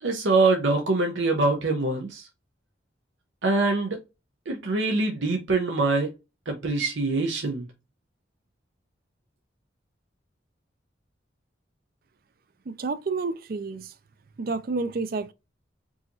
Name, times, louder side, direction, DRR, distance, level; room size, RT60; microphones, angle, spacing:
voice 1, 0.0-2.2 3.4-4.0 4.5-6.1 6.5-7.7, right 3 dB, 80° right, 0.8 m, -24 dB
voice 2, 12.7-13.9 14.4-15.3, right 3 dB, 50° right, 0.4 m, -30 dB
4.7 x 2.9 x 2.7 m
head